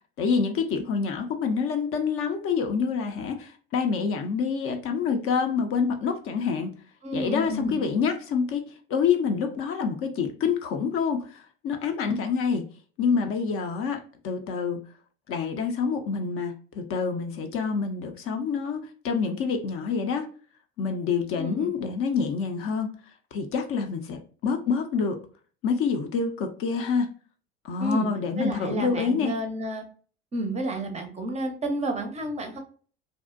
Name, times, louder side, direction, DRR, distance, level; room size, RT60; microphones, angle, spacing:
voice 1, 0.2-6.7 7.1-12.7 13.0-14.8 15.3-20.3 20.8-22.9 23.3-25.2 25.6-27.1 27.6-29.3, left 5 dB, 45° left, 0.4 m, -27 dB
voice 2, 7.0-7.8 21.3-21.7 27.8-28.1 28.4-29.9 30.3-32.6, right 1 dB, 20° right, 0.5 m, -30 dB
2.5 x 2.0 x 2.3 m
hypercardioid pair, 70°, 33 cm